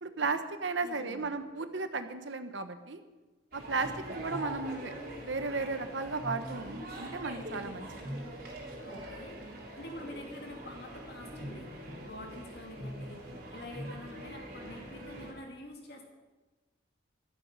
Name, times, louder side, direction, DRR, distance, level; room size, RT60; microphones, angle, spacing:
voice 1, 0.0-3.0 3.5-4.9 5.2-8.1, right 4 dB, 70° right, 9 dB, 1.1 m, -35 dB
voice 2, 0.8-1.3 4.1-4.2 8.8-16.0, left 1 dB, 55° left, 1 dB, 2.7 m, -47 dB
sound 1, 3.5-15.3, right 1 dB, 45° right, 3.2 m, -43 dB
14.0 x 12.5 x 5.5 m, 1.2 s
head